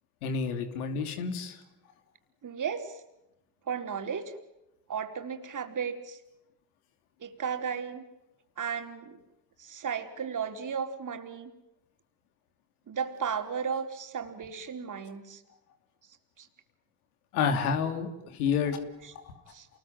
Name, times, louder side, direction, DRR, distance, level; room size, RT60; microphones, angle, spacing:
voice 1, 0.2-1.6 17.3-18.8 19.2-19.3, left 6 dB, 85° left, 7 dB, 2.9 m, -29 dB
voice 2, 2.4-3.0 3.7-4.4 4.9-6.2 7.2-8.0 8.6-9.2 9.6-11.5 12.9-15.4 16.4-16.5 19.5-19.7, right 6 dB, 45° right, 6 dB, 4.3 m, -34 dB
28.5 x 21.0 x 9.3 m, 0.92 s
hypercardioid pair, 60°, 44 cm